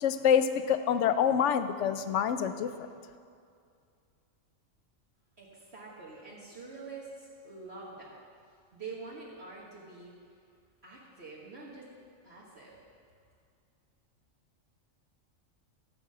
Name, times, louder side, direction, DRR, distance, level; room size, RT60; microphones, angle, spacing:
voice 1, 0.0-2.9, left 8 dB, 70° left, 10 dB, 0.9 m, -26 dB
voice 2, 5.4-8.2 8.7-10.1 10.8-11.9 12.2-12.9, right 4 dB, 50° right, -5 dB, 1.7 m, -46 dB
13.5 x 5.2 x 7.5 m, 2.3 s
omnidirectional pair, 1.4 m